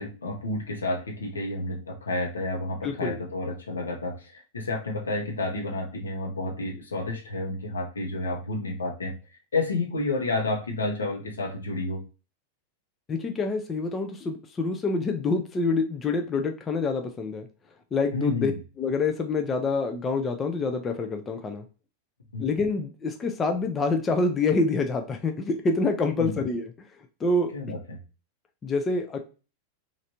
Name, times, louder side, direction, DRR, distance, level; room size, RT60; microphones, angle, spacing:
voice 1, 0.0-9.1 9.5-12.0 18.1-18.5 22.3-22.5 26.2-26.4 27.5-28.0, left 2 dB, 70° left, 1 dB, 0.8 m, -30 dB
voice 2, 2.8-3.2 13.1-17.5 17.9-18.5 18.8-21.6 22.4-26.7 27.2-27.5 28.6-29.2, left 3 dB, 20° left, 5 dB, 0.4 m, -26 dB
3.1 x 2.5 x 2.8 m, 0.34 s
figure-of-eight pair, 90°, 0 cm